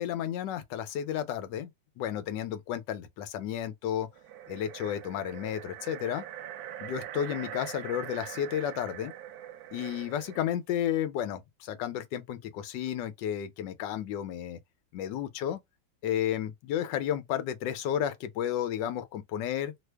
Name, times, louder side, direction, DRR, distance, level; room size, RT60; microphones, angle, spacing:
voice 1, 0.0-1.7 2.0-4.1 4.5-6.2 6.8-9.1 9.7-14.6 14.9-15.6 16.0-19.7, left 10 dB, 70° left, 1.3 m, -32 dB
sound 1, 4.1-10.6, right 11 dB, 75° right, 0.8 m, -43 dB
3.3 x 2.0 x 3.3 m
omnidirectional pair, 2.1 m